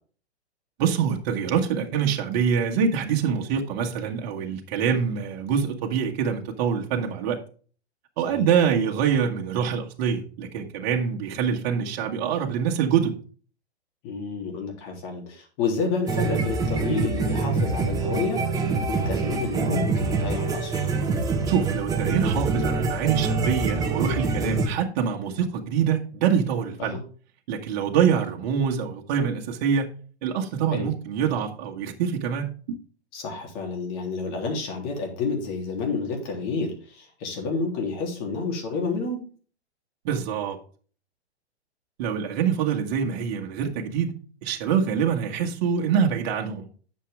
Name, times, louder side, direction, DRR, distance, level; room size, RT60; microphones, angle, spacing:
voice 1, 0.8-7.4 8.2-13.2 21.5-27.0 27.5-29.9 30.2-32.8 40.0-40.6 42.0-44.1 44.4-46.6, right 7 dB, 40° right, 1.6 m, -25 dB
voice 2, 14.0-20.9 26.8-27.0 30.7-30.9 33.1-39.2, left 4 dB, 40° left, 3.5 m, -30 dB
sound 1, 16.1-24.7, right 4 dB, 10° right, 1.3 m, -25 dB
10.0 x 6.9 x 3.6 m
hypercardioid pair, 120°, 33 cm